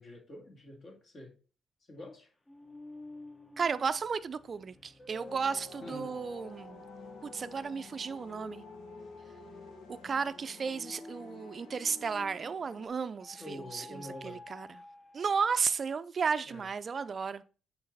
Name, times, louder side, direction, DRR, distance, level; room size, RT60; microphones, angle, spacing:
voice 1, 0.0-1.3 1.9-2.3 5.8-6.2 13.4-14.4 16.4-16.7, left 1 dB, 45° left, 2.3 m, -46 dB
sound 1, 2.5-12.7 13.2-15.9, left 2 dB, 25° left, 1.0 m, -51 dB
voice 2, 3.6-6.8 7.2-8.7 9.9-14.8 15.1-17.4, right 5 dB, 40° right, 0.5 m, -34 dB
sound 2, 5.2-12.9, left 5 dB, 85° left, 1.2 m, -52 dB
8.7 x 3.9 x 4.1 m
cardioid pair, 90°, 0 cm